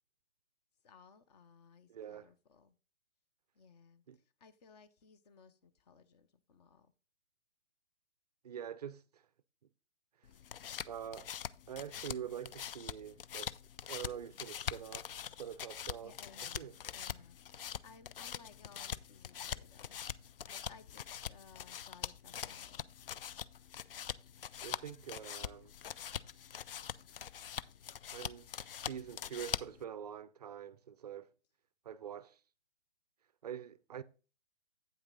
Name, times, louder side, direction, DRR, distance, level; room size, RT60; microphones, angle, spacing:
voice 1, 0.8-2.7 3.5-6.9 16.0-17.4 17.6-20.0 20.5-22.9, left 5 dB, 35° left, 0.9 m, -60 dB
voice 2, 1.9-2.3 4.1-4.2 8.4-9.2 10.9-11.3 11.7-13.5 13.9-15.1 15.4-16.2 16.4-16.7 24.6-25.7 28.1-31.3 31.8-32.4 33.4-34.0, right 9 dB, 35° right, 0.4 m, -45 dB
sound 1, 10.2-29.8, left 9 dB, 55° left, 0.5 m, -44 dB
8.7 x 5.8 x 4.0 m
hypercardioid pair, 140°, 35 cm